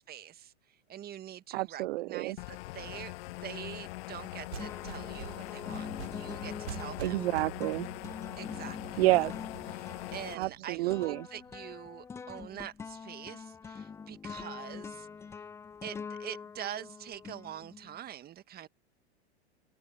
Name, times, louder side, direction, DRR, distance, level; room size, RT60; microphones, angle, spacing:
voice 1, 0.1-0.5 0.9-3.1 3.4-7.3 8.4-9.3 9.7-15.1 15.8-18.7, right 11 dB, 30° right, 1.6 m, -45 dB
voice 2, 1.5-2.4 7.0-7.9 9.0-9.3 10.4-11.3, right 19 dB, 65° right, 0.5 m, -29 dB
sound 1, 2.4-10.4, left 20 dB, 60° left, 1.1 m, -42 dB
sound 2, 3.8-4.3 4.6-18.0, left 6 dB, 10° left, 0.3 m, -45 dB
sound 3, 4.3-11.7, right 9 dB, 80° right, 6.7 m, -47 dB
open air
hypercardioid pair, 105°, 33 cm